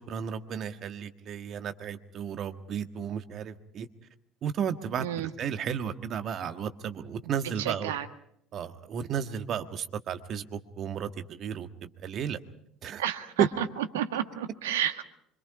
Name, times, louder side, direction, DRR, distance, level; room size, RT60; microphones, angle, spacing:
voice 1, 0.0-3.9 4.4-7.9 8.5-12.4 12.8-13.0 13.4-13.5, right 8 dB, 50° right, 8 dB, 1.6 m, -33 dB
voice 2, 5.0-5.3 7.6-8.1 13.0-15.0, right 10 dB, 75° right, 8 dB, 1.4 m, -31 dB
25.5 x 25.5 x 4.9 m, 0.70 s
figure-of-eight pair, 60°, 0 cm